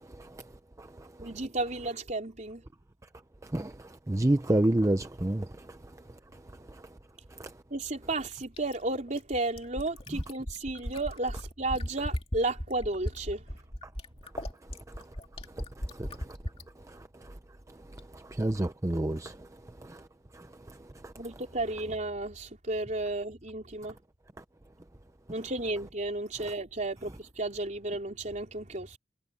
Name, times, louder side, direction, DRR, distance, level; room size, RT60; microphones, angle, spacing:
voice 1, 1.2-2.6 7.7-13.4 21.2-24.0 25.3-29.0, right 2 dB, 40° right, 3.9 m, -33 dB
voice 2, 4.1-5.4 18.4-19.3, right 1 dB, 15° right, 0.5 m, -26 dB
Fill (with liquid), 8.6-16.7 18.0-18.1, equal, 30° left, 2.3 m, -37 dB
head